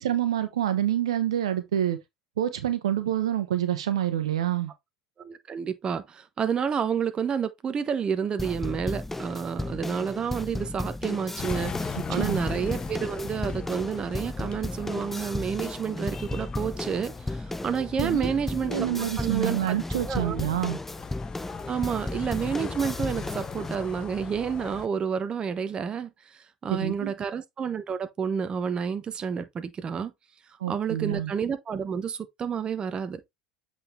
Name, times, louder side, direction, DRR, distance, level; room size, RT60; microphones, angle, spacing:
voice 1, 0.0-2.0 2.4-4.7 12.1-12.4 18.0-18.3 18.6-20.8 26.7-27.1 30.6-31.3, right 11 dB, 80° right, 1.2 m, -27 dB
voice 2, 5.2-18.9 19.2-19.7 20.1-20.4 21.7-30.1 30.7-33.2, right 7 dB, 30° right, 1.0 m, -30 dB
sound 1, 8.4-23.8, left 2 dB, 10° left, 0.4 m, -34 dB
sound 2, 11.4-24.9, left 5 dB, 25° left, 0.9 m, -39 dB
8.0 x 4.2 x 3.3 m
hypercardioid pair, 80°, 3 cm